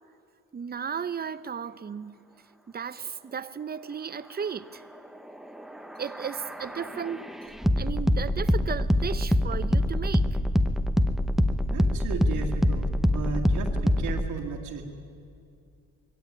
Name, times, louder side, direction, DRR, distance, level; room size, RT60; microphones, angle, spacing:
voice 1, 0.5-2.2 2.7-4.8 6.0-7.3 7.8-10.4, right 7 dB, 30° right, 14 dB, 0.8 m, -35 dB
sound 1, 5.6-14.3, left 1 dB, ahead, 0.9 m, -25 dB
voice 2, 11.7-14.8, right 5 dB, 85° right, -3 dB, 2.0 m, -35 dB
22.0 x 16.0 x 9.6 m, 2.5 s
cardioid pair, 90°, 30 cm